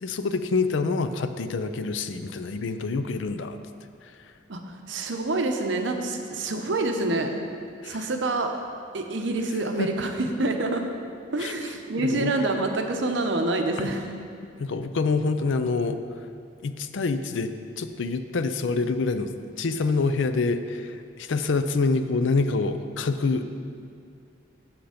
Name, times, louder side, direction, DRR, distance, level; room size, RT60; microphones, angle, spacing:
voice 1, 0.0-3.6 4.0-4.1 7.8-8.0 9.8-9.9 11.4-11.5 12.0-12.4 13.8-13.9 14.6-16.0 16.6-17.5 17.8-23.5, left 3 dB, 70° left, 10 dB, 0.5 m, -26 dB
voice 2, 4.9-7.3 7.8-8.5 8.9-10.9 11.3-14.0, right 2 dB, 65° right, 4 dB, 0.8 m, -27 dB
7.9 x 7.1 x 5.0 m, 2.3 s
head